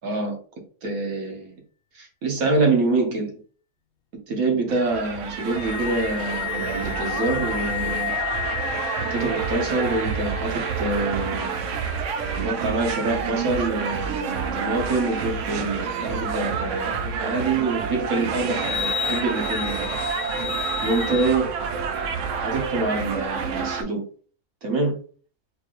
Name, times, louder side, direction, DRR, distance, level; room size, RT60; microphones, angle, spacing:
voice 1, 0.0-0.4 0.8-1.5 1.9-3.3 4.3-8.1 8.9-11.6 12.4-19.9 20.8-21.5 22.4-24.0 24.6-25.0, right 3 dB, 85° right, 1 dB, 1.6 m, -26 dB
sound 1, 4.7-23.8, right 6 dB, 65° right, 0.9 m, -28 dB
sound 2, 5.4-11.6 18.4-21.3, left 11 dB, 80° left, 1.0 m, -32 dB
4.3 x 3.1 x 2.5 m, 0.42 s
omnidirectional pair, 1.5 m